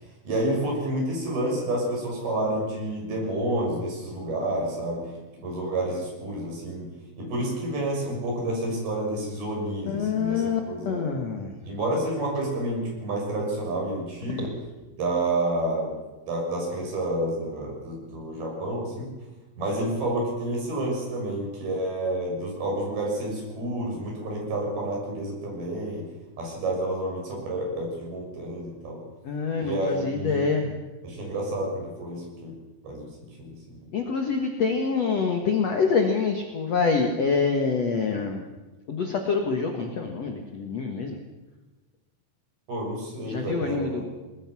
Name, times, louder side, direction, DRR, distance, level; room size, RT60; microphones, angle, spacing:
voice 1, 0.2-5.1 5.4-6.9 7.2-11.1 11.7-14.5 15.0-16.0 16.3-19.1 19.6-26.0 26.4-29.0 29.6-30.7 31.0-32.5 32.8-33.8 42.7-44.1, right 1 dB, 60° right, -1 dB, 8.6 m, -29 dB
voice 2, 9.9-11.6 29.3-30.7 33.9-38.4 38.9-41.2 43.3-44.0, left 5 dB, 55° left, 3 dB, 2.1 m, -26 dB
22.5 x 21.0 x 6.2 m, 1.2 s
omnidirectional pair, 4.9 m